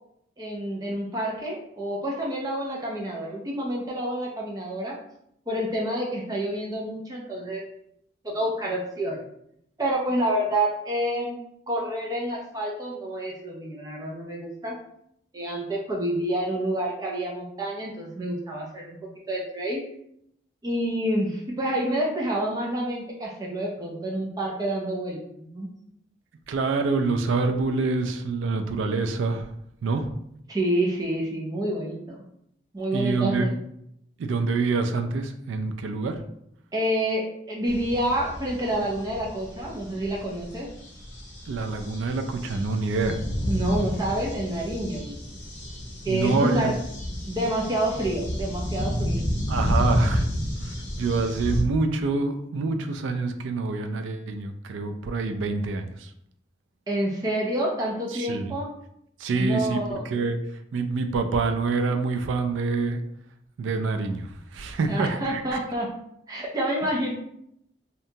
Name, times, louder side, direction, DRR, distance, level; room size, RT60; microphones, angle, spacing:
voice 1, 0.4-5.0 5.5-7.6 8.2-9.2 9.8-11.4 11.7-14.7 15.3-19.0 19.3-19.8 20.6-25.7 30.5-32.2 32.7-33.5 36.7-40.7 43.5-45.3 46.0-46.8 47.3-49.2 56.9-58.7 59.3-60.1 64.8-65.9 66.3-67.1, right 1 dB, 20° right, -2 dB, 0.4 m, -28 dB
voice 2, 26.5-29.5 29.8-30.1 32.9-33.5 34.2-36.2 41.5-43.2 46.1-46.7 49.5-50.3 50.6-56.1 58.1-58.5 59.2-60.4 60.7-63.0 63.6-65.6, right 3 dB, 85° right, 7 dB, 0.3 m, -26 dB
sound 1, 37.7-51.6, equal, 70° left, 0.7 m, -30 dB
2.8 x 2.2 x 2.6 m, 0.74 s
head